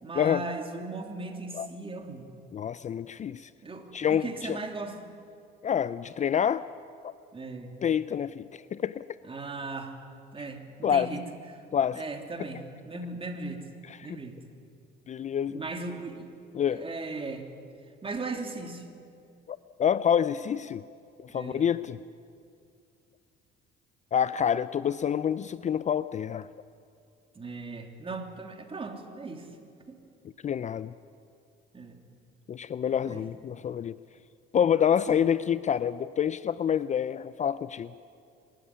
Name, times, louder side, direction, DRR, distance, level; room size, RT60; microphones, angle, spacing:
voice 1, 0.0-2.3 3.6-5.1 7.3-7.8 9.3-10.0 10.3-11.2 11.5-11.6 11.9-13.6 14.0-14.4 15.5-16.3 16.7-17.5 18.0-18.8 21.3-21.7 27.3-29.5 29.9-30.0 31.7-32.0 33.0-33.2 35.1-35.2, right 3 dB, 25° right, 4 dB, 3.0 m, -37 dB
voice 2, 2.5-3.5 3.9-4.6 5.6-6.6 7.0-7.1 7.8-9.0 10.8-11.1 11.7-12.0 13.9-14.2 15.1-15.6 16.5-16.8 19.5-20.8 21.2-22.0 24.1-26.5 30.4-30.9 32.5-34.0 34.5-37.9, left 8 dB, 35° left, 16 dB, 0.5 m, -27 dB
24.0 x 13.0 x 10.0 m, 2.4 s
supercardioid pair, 85°, 20 cm